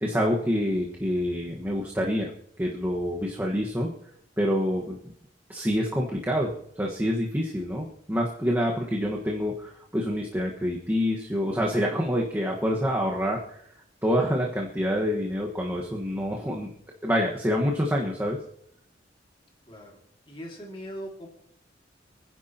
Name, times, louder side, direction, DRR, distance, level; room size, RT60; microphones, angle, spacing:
voice 1, 0.0-2.3 2.6-3.9 4.4-5.0 5.5-13.4 14.0-16.7 17.0-18.4, equal, 10° right, -2 dB, 1.5 m, -27 dB
voice 2, 19.7-20.0 20.3-21.3, equal, 30° left, 0 dB, 2.4 m, -40 dB
28.0 x 10.5 x 3.0 m, 0.71 s
head